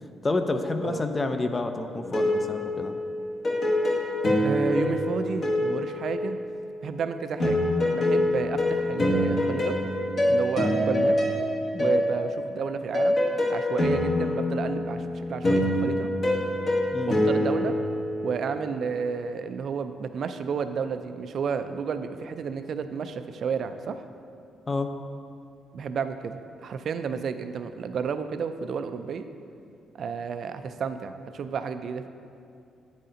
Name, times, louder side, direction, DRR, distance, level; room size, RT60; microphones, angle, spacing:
voice 1, 0.2-3.0 11.7-12.0 16.9-17.1 24.7-24.9, left 2 dB, 25° left, 7 dB, 0.4 m, -29 dB
sound 1, 2.0-6.8 7.4-18.7, left 1 dB, 45° left, 1.1 m, -25 dB
voice 2, 4.4-6.4 6.8-7.6 7.9-9.8 10.3-11.2 11.8-13.2 13.5-16.1 17.1-17.7 18.2-24.0 25.7-29.3 29.9-32.1, right 6 dB, 60° right, 9 dB, 0.3 m, -31 dB
9.0 x 4.2 x 3.8 m, 2.5 s
cardioid pair, 105°, 0 cm